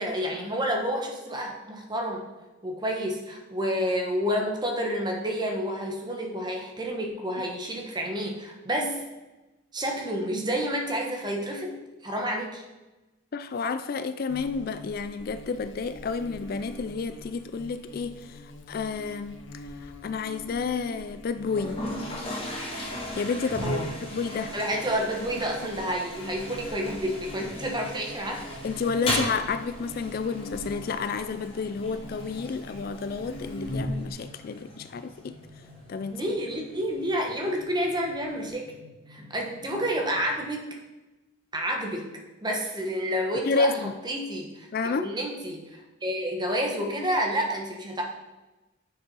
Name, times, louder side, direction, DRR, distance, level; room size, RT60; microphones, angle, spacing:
voice 1, 0.0-2.2 2.6-9.1 9.7-12.6 23.6-23.9 24.5-28.4 36.1-38.7 39.1-40.8 41.5-42.1 42.4-43.7 44.0-44.7 44.9-48.0, equal, 20° right, 1 dB, 1.3 m, -29 dB
voice 2, 13.3-24.5 28.6-35.4 35.9-36.3 43.4-43.9 44.7-45.1, left 4 dB, 45° left, 11 dB, 0.3 m, -31 dB
Buzz, 14.3-34.1, left 1 dB, 65° left, 0.8 m, -42 dB
Toilet flush, 21.5-38.5, left 1 dB, 25° left, 2.2 m, -38 dB
sound 1, 22.7-40.3, right 2 dB, 70° right, 1.6 m, -49 dB
7.1 x 6.2 x 5.5 m, 1.1 s
head